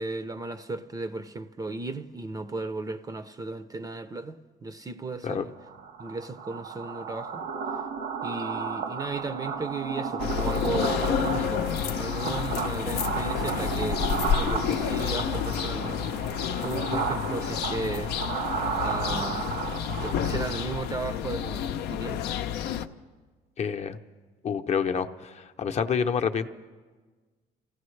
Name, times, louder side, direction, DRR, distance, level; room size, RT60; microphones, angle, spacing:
voice 1, 0.0-5.5 6.0-7.4 7.7-7.8 8.2-11.7 11.9-14.1 14.3-16.4 16.6-18.2 18.8-19.5 20.0-22.3, right 3 dB, 20° right, 0.5 m, -35 dB
sound 1, 5.6-20.9, right 6 dB, 90° right, 1.8 m, -33 dB
sound 2, 10.2-22.9, left 9 dB, 80° left, 0.6 m, -30 dB
voice 2, 23.6-24.0 24.4-26.5, left 6 dB, 40° left, 0.7 m, -28 dB
27.0 x 16.0 x 3.2 m
cardioid pair, 110°, 17 cm